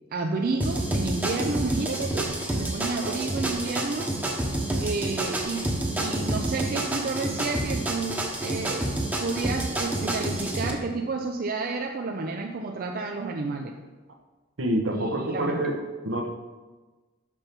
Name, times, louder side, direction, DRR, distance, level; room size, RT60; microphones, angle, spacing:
voice 1, 0.1-4.1 4.8-13.8 14.9-15.6, right 3 dB, 50° right, 3 dB, 0.5 m, -31 dB
sound 1, 0.6-10.7, right 1 dB, 10° right, 1.0 m, -29 dB
voice 2, 14.6-15.7 16.0-16.3, right 1 dB, 75° right, 3 dB, 1.1 m, -27 dB
6.0 x 6.0 x 5.2 m, 1.3 s
head